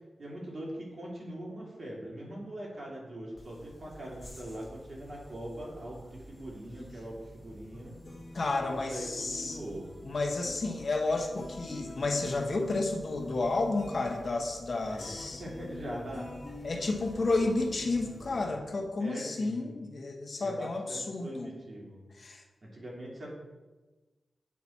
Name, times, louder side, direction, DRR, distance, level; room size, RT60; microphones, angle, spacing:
voice 1, 0.2-8.0 8.7-9.9 14.8-16.3 19.0-19.8 20.3-22.0 22.6-23.3, right 1 dB, 40° right, -4 dB, 2.6 m, -42 dB
sound 1, 3.4-18.5, left 1 dB, 30° left, 2.1 m, -47 dB
voice 2, 8.3-9.6 10.0-15.4 16.6-21.5 22.2-22.4, left 3 dB, 50° left, 2 dB, 1.0 m, -31 dB
8.4 x 5.8 x 4.4 m, 1.2 s
wide cardioid pair, 100°, 0 cm